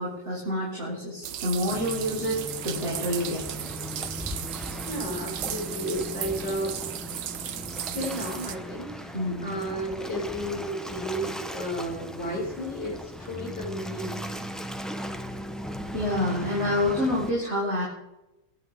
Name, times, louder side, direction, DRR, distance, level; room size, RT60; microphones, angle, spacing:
voice 1, 0.0-3.4 9.1-9.6 15.9-17.8, left 1 dB, 35° right, -7 dB, 6.7 m, -28 dB
sound 1, 1.2-8.6, right 11 dB, 70° right, 1.4 m, -36 dB
Waves surf, 1.7-17.3, equal, ahead, 0.5 m, -38 dB
voice 2, 4.9-6.7 7.7-14.2, equal, 65° left, -4 dB, 6.5 m, -33 dB
27.5 x 11.5 x 3.8 m, 0.95 s
omnidirectional pair, 2.1 m